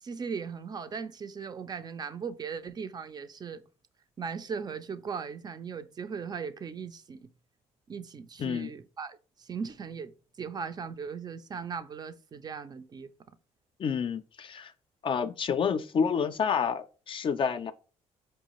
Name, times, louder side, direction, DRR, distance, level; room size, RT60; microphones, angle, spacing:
voice 1, 0.0-3.6 4.2-7.2 7.9-13.1, right 6 dB, 35° right, 0.4 m, -38 dB
voice 2, 8.4-8.7 13.8-14.7 15.0-17.7, left 6 dB, 45° left, 0.4 m, -29 dB
4.6 x 2.4 x 3.0 m
cardioid pair, 85°, 13 cm